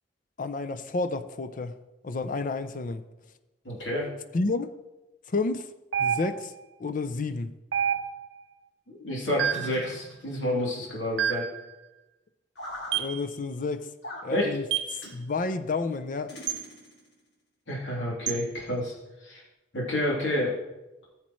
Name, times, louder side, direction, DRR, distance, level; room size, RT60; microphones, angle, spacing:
voice 1, 0.4-1.8 2.0-3.0 4.3-4.7 5.3-5.7 6.0-6.5 6.8-7.5 12.9-13.9 14.2-14.6 14.9-16.3, left 3 dB, 45° left, 10 dB, 0.5 m, -30 dB
voice 2, 3.6-4.1 8.9-11.5 14.3-14.5 17.7-18.9 19.2-19.4 19.7-20.6, left 1 dB, 90° left, -4 dB, 3.2 m, -29 dB
sound 1, 5.9-6.6 7.7-8.4 9.4-9.8 11.2-11.6 12.9-13.2 14.7-15.0 16.5-16.7 18.3-18.4, right 9 dB, 70° right, 0.5 m, -28 dB
sound 2, 9.4-10.6 12.5-13.0 14.0-14.3 15.0-15.2 16.3-17.1, left 1 dB, 70° left, 2.7 m, -42 dB
14.5 x 7.3 x 3.1 m, 1.0 s
head